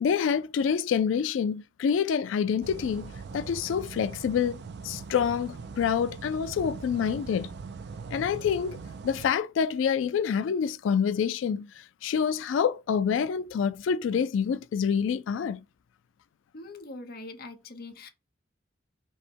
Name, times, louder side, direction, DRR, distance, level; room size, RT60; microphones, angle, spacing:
voice 1, 0.0-4.6 4.8-7.5 8.1-8.8 9.0-15.6, left 7 dB, 85° left, 0.3 m, -27 dB
sound 1, 2.6-9.3, right 5 dB, 60° right, 0.4 m, -41 dB
voice 2, 16.5-18.1, left 2 dB, 50° left, 0.8 m, -42 dB
5.4 x 2.1 x 4.4 m
head